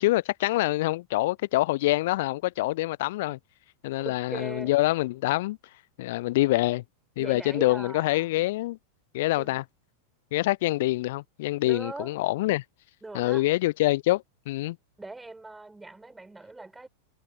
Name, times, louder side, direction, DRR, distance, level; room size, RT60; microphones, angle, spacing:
voice 1, 0.0-3.4 3.8-5.6 6.0-6.8 7.2-8.8 9.1-9.6 10.3-12.6 13.1-14.8, left 18 dB, 50° left, 0.7 m, -25 dB
voice 2, 4.0-4.7 7.2-8.4 9.3-9.6 11.6-12.1 13.0-13.5 15.0-16.9, right 2 dB, 10° right, 8.0 m, -40 dB
figure-of-eight pair, 90°, 0 cm